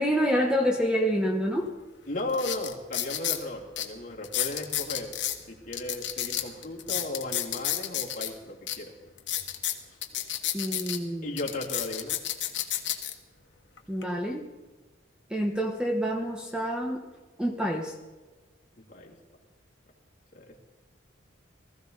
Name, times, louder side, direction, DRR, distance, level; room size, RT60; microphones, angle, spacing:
voice 1, 0.0-1.7 10.5-11.4 13.9-14.4 15.3-17.0 17.4-17.9, equal, 5° right, 1 dB, 1.1 m, -27 dB
sound 1, 1.7-1.8 2.3-3.4 3.8-3.9 4.2-5.4 5.7-8.3 8.7-8.8 9.2-11.0 11.4-13.1 13.8-14.0, left 12 dB, 70° left, 1.4 m, -31 dB
voice 2, 2.1-5.1 5.5-8.9 9.9-10.0 11.2-12.2 18.8-19.2 20.3-20.6, left 1 dB, 45° left, -2 dB, 2.8 m, -35 dB
20.0 x 14.5 x 4.0 m, 1.2 s
head